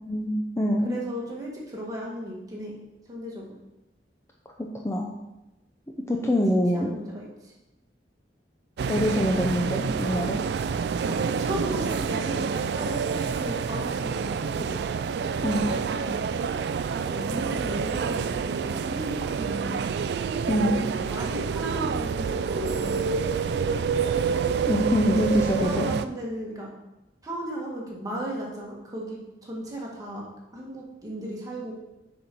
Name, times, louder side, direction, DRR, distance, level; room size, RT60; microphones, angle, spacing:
voice 1, 0.1-1.0 4.6-5.1 6.1-6.9 8.9-10.4 15.4-15.7 20.5-20.9 24.6-25.9, equal, 15° left, 0 dB, 0.6 m, -24 dB
voice 2, 0.8-2.8 3.1-3.4 6.2-6.4 6.7-7.5 11.0-14.8 15.5-16.2 17.0-19.9 21.0-23.2 25.0-26.7 27.2-30.2 30.5-31.7, equal, 20° right, -4 dB, 1.7 m, -36 dB
sound 1, 8.8-26.1, right 6 dB, 65° right, 0.3 m, -28 dB
7.1 x 4.4 x 5.2 m, 0.97 s
head